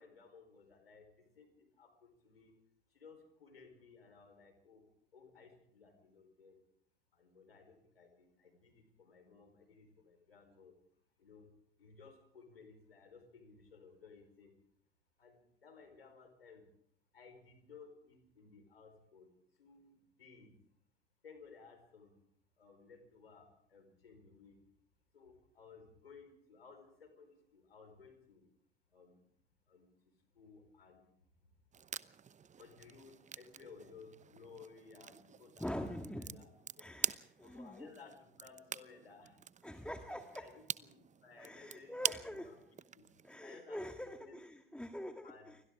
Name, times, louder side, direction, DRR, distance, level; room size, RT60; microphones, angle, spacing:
voice 1, 0.0-2.5 2.9-4.8 5.1-6.6 7.1-10.7 11.2-11.5 11.8-14.5 15.2-16.6 17.1-19.3 19.6-19.9 20.2-20.5 21.2-22.1 22.6-24.6 25.1-28.5 28.9-29.2 29.7-29.9 30.3-31.0 32.6-36.5 36.8-36.9 37.4-39.4 39.7-42.6 42.9-43.0 43.4-43.8 44.2-44.3 44.6-45.5, left 5 dB, 85° left, 4.6 m, -58 dB
sound 1, 31.7-43.4, right 7 dB, 25° right, 0.9 m, -45 dB
voice 2, 35.6-36.4 36.8-37.9 39.6-40.5 41.4-42.6 43.2-45.6, left 1 dB, 5° left, 1.8 m, -45 dB
29.0 x 24.0 x 3.7 m
figure-of-eight pair, 65°, 29 cm